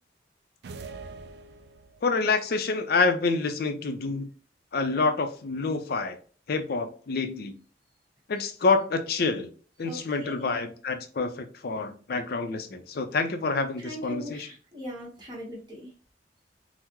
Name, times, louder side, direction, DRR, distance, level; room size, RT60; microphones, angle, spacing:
sound 1, 0.6-2.2, right 4 dB, 60° right, 0.3 m, -43 dB
voice 1, 2.0-4.3 4.7-6.2 6.5-7.5 8.3-9.5 9.8-14.5, left 4 dB, 55° left, 7 dB, 0.4 m, -27 dB
voice 2, 9.8-10.6 13.8-15.9, left 1 dB, 25° right, -3 dB, 1.1 m, -40 dB
3.5 x 2.0 x 2.9 m, 0.40 s
head